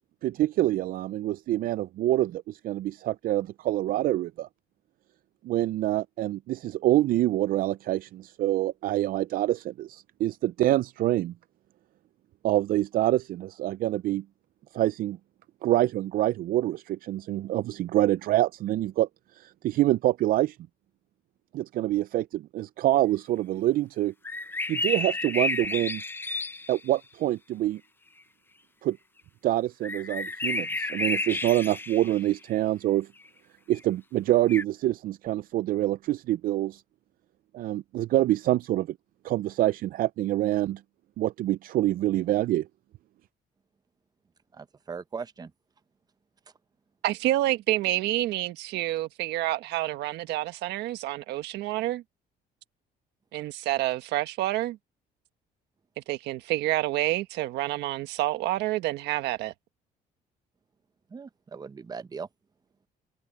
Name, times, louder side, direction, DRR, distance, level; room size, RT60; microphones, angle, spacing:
voice 1, 0.2-4.5 5.4-11.3 12.4-14.2 14.7-15.2 15.6-20.6 21.5-24.1 24.7-26.0 26.7-27.8 28.8-29.0 29.4-33.1 33.7-36.8 37.5-39.0 39.2-40.8 41.2-42.7, right 14 dB, 60° right, 0.4 m, -26 dB
sound 1, 24.2-26.9 29.8-32.3 33.7-33.8 34.5-34.6, left 2 dB, 10° left, 0.7 m, -31 dB
voice 2, 44.5-45.5 61.1-62.3, right 5 dB, 25° right, 0.8 m, -39 dB
voice 3, 47.0-52.0 53.3-54.8 56.0-59.5, right 15 dB, 85° right, 1.5 m, -28 dB
cardioid pair, 110°, 17 cm